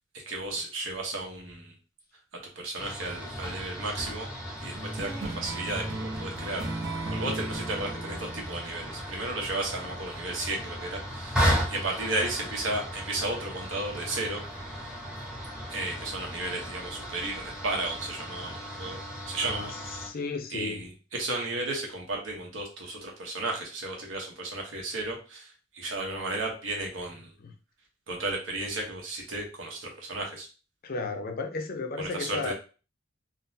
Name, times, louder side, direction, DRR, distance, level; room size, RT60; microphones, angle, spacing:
voice 1, 0.3-1.8 2.6-4.3 4.6-6.7 7.1-14.9 15.7-19.0 19.3-20.1 20.5-27.3 28.1-30.5 32.0-32.5, right 2 dB, 80° right, 0 dB, 1.0 m, -34 dB
sound 1, 2.8-20.1, equal, 5° right, 0.7 m, -35 dB
sound 2, 4.7-9.7, right 2 dB, 55° right, 0.7 m, -36 dB
voice 2, 19.4-20.9 27.4-27.5 30.8-32.5, left 4 dB, 50° left, 5 dB, 0.5 m, -34 dB
3.6 x 2.1 x 2.7 m, 0.35 s
head